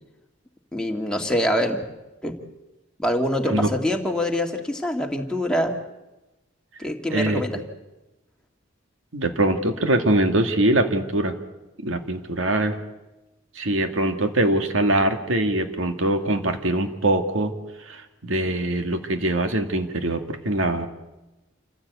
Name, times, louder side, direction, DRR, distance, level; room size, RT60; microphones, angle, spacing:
voice 1, 0.7-1.8 2.2-2.4 3.0-5.8 6.8-7.6, equal, 5° left, 1 dB, 2.0 m, -24 dB
voice 2, 7.1-7.4 9.1-11.4 11.8-12.8 13.6-17.5 17.8-20.9, right 1 dB, 80° right, 6 dB, 2.1 m, -23 dB
27.5 x 15.5 x 8.3 m, 1.0 s
head